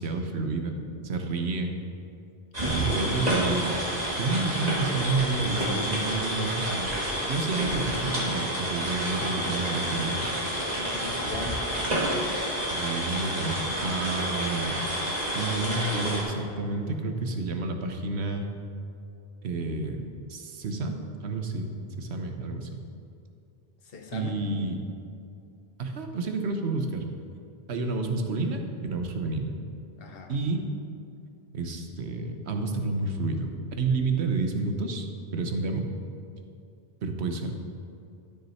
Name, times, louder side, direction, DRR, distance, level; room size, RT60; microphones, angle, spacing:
voice 1, 0.0-1.8 2.8-3.8 4.2-10.2 12.7-14.8 15.3-18.5 19.4-20.0 20.3-20.9 21.2-22.8 24.1-24.8 25.8-27.0 27.7-29.6 30.3-30.6 31.5-35.9 37.0-37.5, right 3 dB, 90° right, 5 dB, 1.1 m, -30 dB
sound 1, 2.5-16.2, right 1 dB, 40° right, 1.8 m, -29 dB
voice 2, 2.6-3.1 9.2-9.3 10.8-11.6 23.8-24.4 30.0-30.4, left 4 dB, 65° left, 3 dB, 1.2 m, -38 dB
12.0 x 6.4 x 4.3 m, 2.5 s
omnidirectional pair, 1.1 m